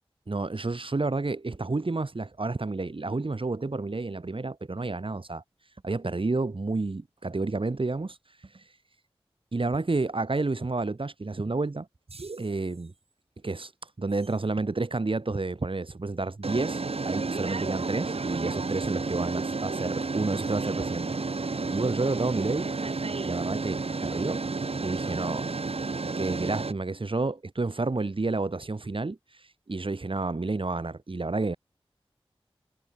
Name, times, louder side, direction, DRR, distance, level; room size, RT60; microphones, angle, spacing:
voice 1, 0.3-5.4 5.8-8.2 8.5-8.6 9.5-11.9 12.4-12.9 13.4-13.7 14.0-22.7 23.2-24.4 24.8-25.5 26.2-29.2 29.7-31.6, right 3 dB, 60° right, 5.5 m, -30 dB
sound 1, 12.1-12.5 14.2-14.3 16.4-26.7, right 3 dB, 75° right, 3.6 m, -31 dB
wide cardioid pair, 60°, 10 cm